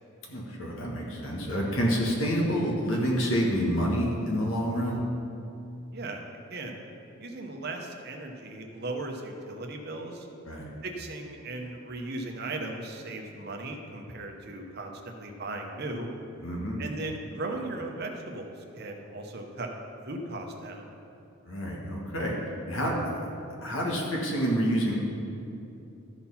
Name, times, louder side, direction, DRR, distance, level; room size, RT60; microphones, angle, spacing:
voice 1, 0.3-5.0 10.4-10.7 16.4-16.8 21.4-22.3 22.7-23.3 23.6-24.9, equal, 65° left, -2 dB, 1.5 m, -28 dB
voice 2, 7.2-10.3 10.8-16.1 16.8-19.7 20.1-20.9, right 2 dB, 45° right, 2 dB, 0.9 m, -37 dB
13.0 x 4.4 x 5.6 m, 2.8 s
head